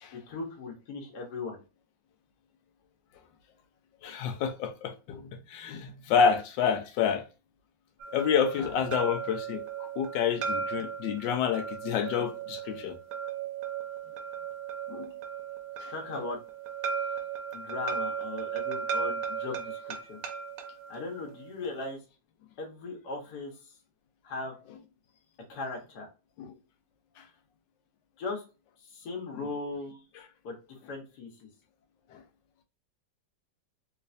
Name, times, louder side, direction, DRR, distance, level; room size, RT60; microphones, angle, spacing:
voice 1, 0.1-1.6 15.9-16.4 17.5-20.2 20.9-22.0 22.6-23.5 24.2-24.5 25.5-26.1 28.2-28.4 28.9-30.0 30.4-31.5, left 3 dB, 65° left, 1.5 m, -38 dB
voice 2, 4.0-7.3 8.1-12.9 14.9-15.1 15.8-15.9 26.4-26.5 27.2-27.3 29.3-29.4 32.1-32.2, left 7 dB, 80° left, 1.3 m, -29 dB
sound 1, 8.0-21.9, right 6 dB, 65° right, 1.0 m, -36 dB
3.4 x 3.2 x 2.5 m
omnidirectional pair, 2.0 m